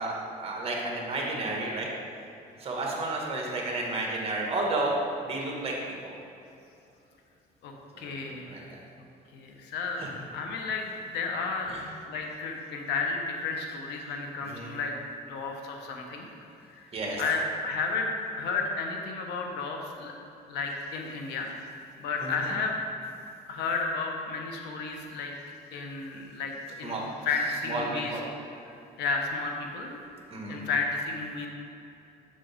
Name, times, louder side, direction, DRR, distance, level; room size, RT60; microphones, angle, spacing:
voice 1, 0.0-1.9 2.6-4.9 5.2-5.7 6.0-6.1 7.9-8.2 8.5-8.6 10.0-10.1 11.7-11.8 14.5-14.7 16.9-17.2 22.2-22.3 26.8-27.0 27.7-28.2 30.3-30.6, right 2 dB, 35° right, -2 dB, 1.7 m, -32 dB
voice 2, 7.6-8.6 9.3-11.8 12.0-15.0 15.3-16.3 16.7-16.9 17.2-20.1 20.5-21.5 22.0-22.8 23.5-25.3 25.7-27.0 27.2-28.2 28.7-30.0 30.5-31.5, left 4 dB, 85° left, 2 dB, 1.0 m, -32 dB
7.4 x 6.7 x 3.5 m, 2.8 s
cardioid pair, 110°, 17 cm